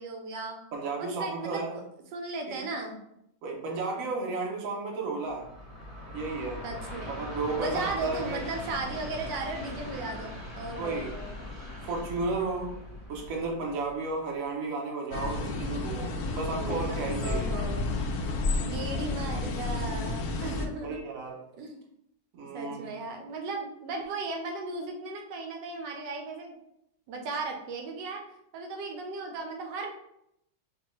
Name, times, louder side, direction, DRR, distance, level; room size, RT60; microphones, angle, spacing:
voice 1, 0.0-0.6 1.2-1.8 2.1-3.0 6.6-7.2 7.6-11.4 16.4-17.9 18.6-21.0 21.6-21.8 22.5-26.5 27.1-28.2 28.5-29.9, right 3 dB, 80° right, 3 dB, 1.3 m, -36 dB
voice 2, 0.7-1.8 2.5-2.6 3.4-5.5 6.1-6.6 7.0-8.4 10.8-11.2 11.8-12.8 13.1-17.5 18.3-18.4 20.8-21.5 22.3-22.9, right 3 dB, 60° right, 0 dB, 1.0 m, -33 dB
Train, 5.2-14.4, left 1 dB, 35° left, 0.6 m, -41 dB
sound 1, 15.1-20.7, left 3 dB, 75° left, 0.7 m, -31 dB
5.3 x 2.3 x 3.0 m, 0.77 s
omnidirectional pair, 1.9 m